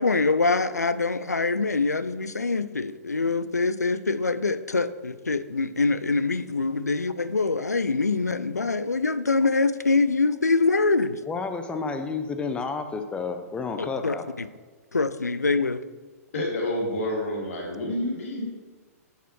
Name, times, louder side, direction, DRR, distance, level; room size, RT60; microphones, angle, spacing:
voice 1, 0.0-11.2 13.8-14.5 14.9-15.8, left 3 dB, 85° left, 14 dB, 0.4 m, -24 dB
voice 2, 11.3-14.2, left 4 dB, 10° left, 7 dB, 0.7 m, -30 dB
voice 3, 16.3-18.5, left 1 dB, 60° left, -2 dB, 2.5 m, -28 dB
10.0 x 6.6 x 3.2 m, 1.4 s
figure-of-eight pair, 110°, 9 cm